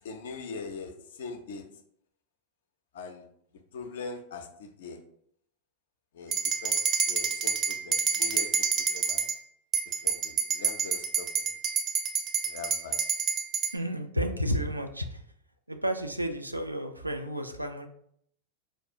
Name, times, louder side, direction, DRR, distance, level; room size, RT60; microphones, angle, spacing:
voice 1, 0.0-1.6 2.9-3.3 3.7-5.0 6.1-6.8 7.0-9.3 9.9-11.6 12.4-13.0, left 4 dB, 60° left, 7 dB, 0.4 m, -42 dB
sound 1, 6.3-9.4 9.7-13.7, right 6 dB, 30° right, 0.5 m, -28 dB
voice 2, 13.7-15.2 15.7-17.9, equal, 85° right, 6 dB, 0.3 m, -31 dB
4.3 x 2.3 x 2.6 m, 0.67 s
figure-of-eight pair, 90°, 0 cm